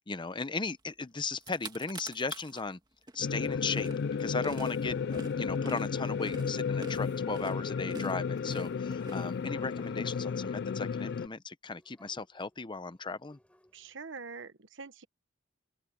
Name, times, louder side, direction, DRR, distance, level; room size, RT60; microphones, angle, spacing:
voice 1, 0.1-2.8 3.1-3.9 4.2-13.4, left 4 dB, 25° left, 0.7 m, -36 dB
sound 1, 1.0-1.1 1.3-2.6 3.1-9.8, right 2 dB, 25° right, 2.1 m, -47 dB
sound 2, 3.2-11.3, left 6 dB, 60° left, 0.4 m, -33 dB
sound 3, 5.9-7.4 8.1-8.2 8.6-8.7 9.2-10.7 11.7-14.0, left 1 dB, 5° left, 6.5 m, -67 dB
voice 2, 13.7-15.0, right 4 dB, 70° right, 1.1 m, -44 dB
open air
head